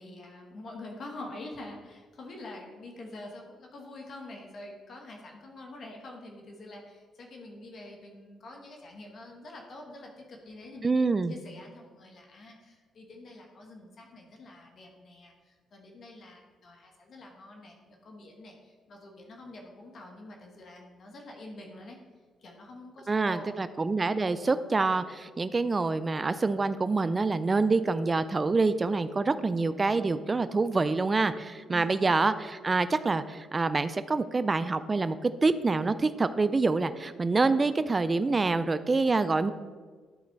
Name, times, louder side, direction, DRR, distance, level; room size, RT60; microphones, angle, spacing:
voice 1, 0.0-10.9 11.3-22.0 22.4-23.6 31.7-32.1, left 2 dB, 55° left, 1 dB, 1.5 m, -46 dB
voice 2, 10.8-11.3 23.1-39.5, right 3 dB, 25° right, 12 dB, 0.4 m, -26 dB
11.0 x 4.2 x 4.6 m, 1.5 s
cardioid pair, 90°, 0 cm